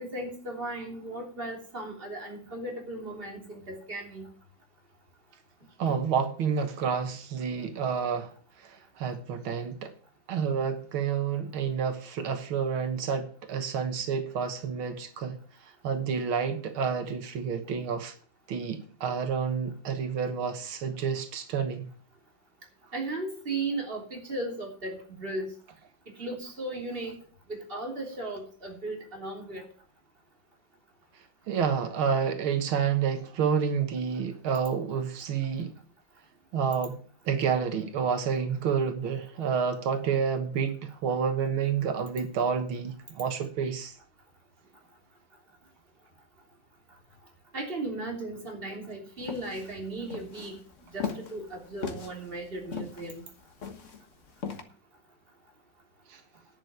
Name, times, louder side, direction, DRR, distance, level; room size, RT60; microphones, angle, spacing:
voice 1, 0.0-4.2 22.9-25.5 26.2-27.2 27.5-29.6 47.5-50.6 50.9-53.2, right 2 dB, 25° right, 3.4 m, -36 dB
voice 2, 5.8-8.3 8.6-9.9 10.3-15.4 15.6-18.1 18.5-21.9 31.5-35.7 36.5-37.0 37.3-43.9 56.1-56.2, right 6 dB, 90° right, 2.2 m, -29 dB
sound 1, 49.2-54.6, left 6 dB, 40° left, 1.6 m, -38 dB
11.0 x 6.9 x 8.1 m
omnidirectional pair, 2.2 m